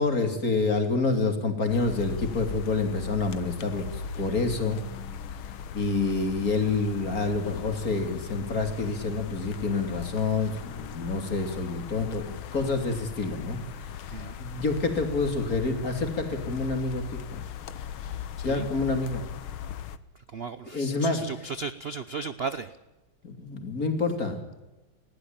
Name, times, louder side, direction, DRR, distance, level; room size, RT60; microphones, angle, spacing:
voice 1, 0.0-4.8 5.7-13.6 14.0-17.2 18.4-19.2 20.7-21.2 23.2-24.4, left 3 dB, 45° left, 6 dB, 3.4 m, -28 dB
sound 1, 1.7-20.0, left 7 dB, 85° left, 1.9 m, -38 dB
voice 2, 20.1-22.8, right 4 dB, 65° right, 13 dB, 0.6 m, -35 dB
20.0 x 16.0 x 9.0 m, 1.0 s
omnidirectional pair, 2.2 m